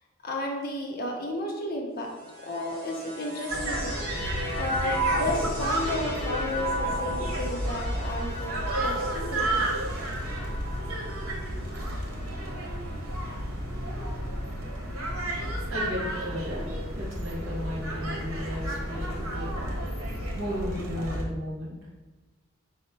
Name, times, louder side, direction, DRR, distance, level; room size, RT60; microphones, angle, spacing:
voice 1, 0.2-2.1 2.4-4.0 4.5-9.8, left 1 dB, 45° left, 0 dB, 0.6 m, -33 dB
sound 1, 2.0-13.5 14.3-15.0, right 1 dB, 25° right, 1.2 m, -36 dB
sound 2, 3.5-21.2, right 1 dB, 85° right, 0.9 m, -32 dB
voice 2, 15.7-16.7 17.0-19.7 20.3-21.8, left 1 dB, 65° right, -4 dB, 1.3 m, -35 dB
4.8 x 2.1 x 4.4 m, 1.2 s
head